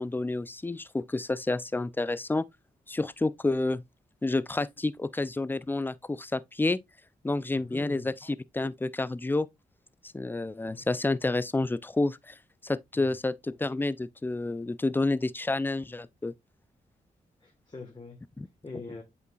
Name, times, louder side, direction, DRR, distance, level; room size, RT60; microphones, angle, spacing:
voice 1, 0.0-2.4 2.9-3.8 4.2-6.8 7.2-8.1 8.5-9.5 10.1-12.4 12.6-16.3 18.4-18.5, left 2 dB, 10° left, 0.4 m, -29 dB
voice 2, 7.5-8.1 10.7-10.9 17.4-18.2 18.6-19.0, left 3 dB, 30° left, 1.4 m, -44 dB
8.0 x 5.1 x 2.3 m
cardioid pair, 65°, 17 cm